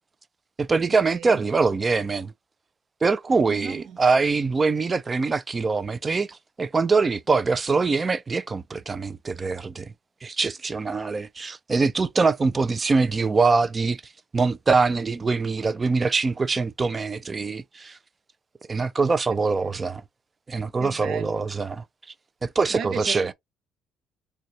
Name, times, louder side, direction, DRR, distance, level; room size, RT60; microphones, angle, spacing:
voice 1, 0.6-2.3 3.0-9.9 10.2-14.0 14.3-18.0 18.7-20.0 20.5-21.8 22.4-23.3, right 4 dB, 25° right, 0.4 m, -23 dB
voice 2, 1.1-1.4 3.5-4.0 20.8-21.5 22.7-23.3, right 7 dB, 55° right, 0.7 m, -35 dB
4.0 x 2.2 x 2.7 m
cardioid pair, 100°, 0 cm